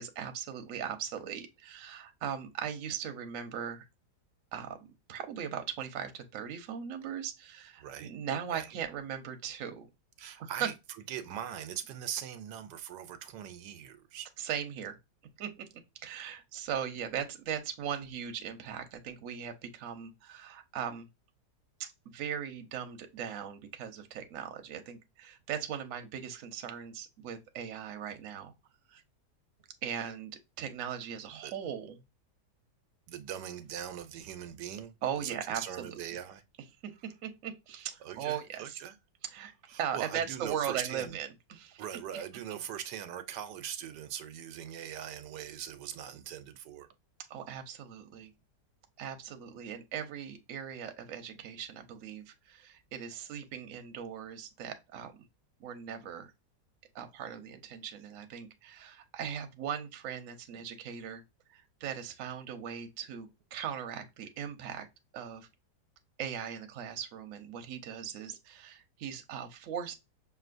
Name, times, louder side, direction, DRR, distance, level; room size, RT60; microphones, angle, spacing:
voice 1, 0.0-3.9 4.5-9.9 10.4-10.7 14.4-15.0 15.4-15.7 16.0-21.1 21.8-28.5 28.9-29.0 29.8-32.0 35.0-36.0 36.8-38.8 39.2-39.5 39.8-41.9 42.1-42.2 47.3-48.3 49.0-55.1 55.6-56.3 56.9-61.2 61.5-64.9 65.1-65.5 66.2-69.9, right 8 dB, 60° right, 1.0 m, -39 dB
voice 2, 7.8-8.1 8.5-8.8 10.2-10.7 11.1-14.3 31.3-31.5 33.1-36.4 38.0-39.0 39.7-41.2 41.8-46.9, right 10 dB, 85° right, 1.2 m, -41 dB
5.9 x 2.6 x 2.5 m
omnidirectional pair, 1.8 m